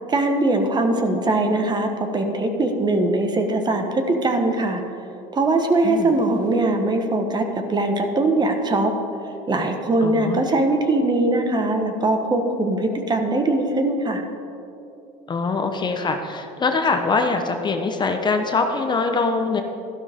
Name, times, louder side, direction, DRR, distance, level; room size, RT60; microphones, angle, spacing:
voice 1, 0.1-4.8 5.3-8.9 9.5-14.2, right 2 dB, 25° right, 5 dB, 1.3 m, -21 dB
voice 2, 10.0-10.4 15.3-19.6, left 4 dB, 30° left, 5 dB, 0.9 m, -23 dB
13.0 x 12.0 x 3.6 m, 2.8 s
supercardioid pair, 105°, 16 cm